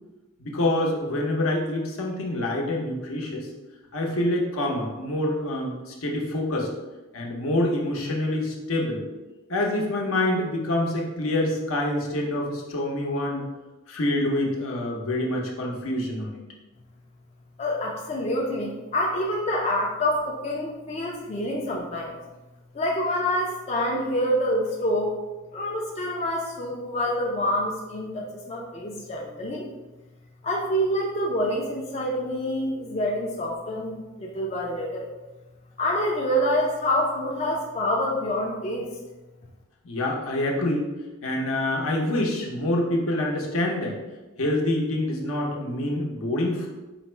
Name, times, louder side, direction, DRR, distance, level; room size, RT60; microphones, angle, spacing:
voice 1, 0.4-3.5 3.9-6.7 7.1-9.0 9.5-13.4 13.9-16.4 39.8-40.9 41.2-44.0 44.4-46.7, left 1 dB, 75° left, -1 dB, 0.7 m, -26 dB
voice 2, 17.6-22.2 22.7-25.2 25.5-29.7 30.4-35.1 35.8-38.9, equal, 30° left, -2 dB, 0.4 m, -27 dB
4.1 x 2.0 x 4.3 m, 1.1 s
head